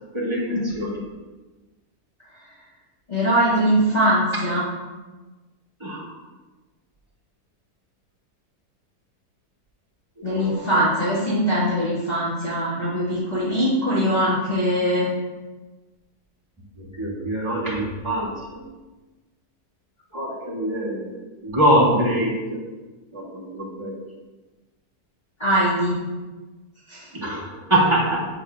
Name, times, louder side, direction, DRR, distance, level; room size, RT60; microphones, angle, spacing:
voice 1, 0.1-1.0 5.8-6.1 10.2-10.9 16.8-18.7 20.1-21.1 21.4-22.6 23.1-24.0 27.1-28.3, right 1 dB, 20° right, -6 dB, 2.3 m, -24 dB
voice 2, 3.1-4.7 10.2-15.1 25.4-26.0 26.9-27.1, equal, 30° left, -10 dB, 1.7 m, -21 dB
8.2 x 7.3 x 2.3 m, 1.2 s
omnidirectional pair, 1.6 m